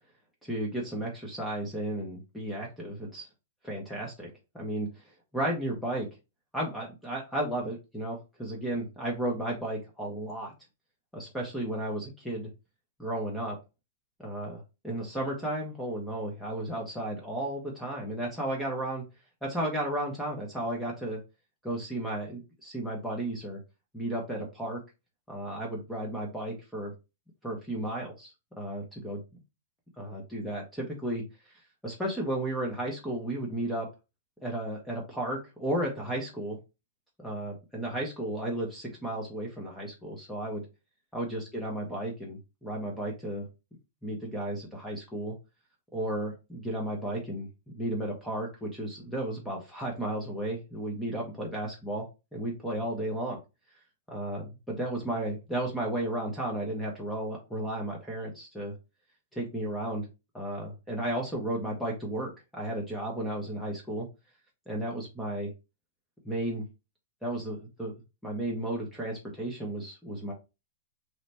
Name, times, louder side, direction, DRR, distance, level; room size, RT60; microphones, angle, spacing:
voice 1, 0.4-3.3 3.6-4.9 5.3-6.1 6.5-10.5 11.1-12.5 13.0-13.6 14.2-19.0 19.4-21.2 21.6-23.6 23.9-24.8 25.3-26.9 27.4-29.2 30.0-31.2 31.8-33.9 34.4-36.6 37.2-40.7 41.1-43.5 44.0-45.3 45.9-52.1 52.3-53.4 54.1-58.8 59.3-60.1 60.3-64.1 64.7-65.5 66.2-66.6 67.2-67.9 68.2-70.3, right 1 dB, ahead, -2 dB, 0.6 m, -33 dB
3.1 x 2.1 x 3.9 m, 0.26 s
hypercardioid pair, 170°, 0 cm